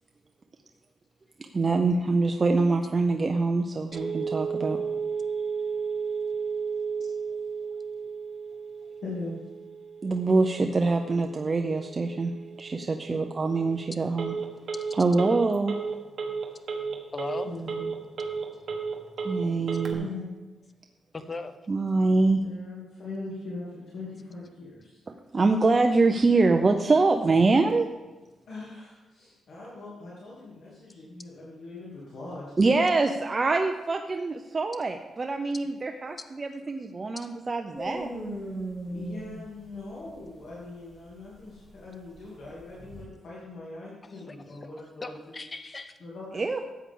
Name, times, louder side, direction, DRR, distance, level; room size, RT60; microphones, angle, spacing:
voice 1, 1.5-4.8 10.0-12.3 12.6-14.3 15.0-15.7 19.2-20.1 21.7-22.4 25.3-27.9 32.6-38.1 46.3-46.6, right 3 dB, 30° right, 5 dB, 0.6 m, -24 dB
Telephone, 3.9-19.9, right 5 dB, 60° right, 1.5 m, -34 dB
voice 2, 9.0-9.4 13.1-13.3 17.5-17.9 19.9-20.3 22.4-25.0 28.5-33.0 38.9-45.4 46.0-46.6, left 2 dB, 70° left, -6 dB, 2.7 m, -41 dB
voice 3, 17.1-17.5 21.1-21.6 44.2-44.3 45.0-46.0, left 3 dB, 25° left, 9 dB, 0.8 m, -37 dB
sound 1, 37.7-43.0, right 1 dB, 5° right, 2.2 m, -38 dB
13.0 x 8.4 x 3.7 m, 1.2 s
cardioid pair, 130°, 0 cm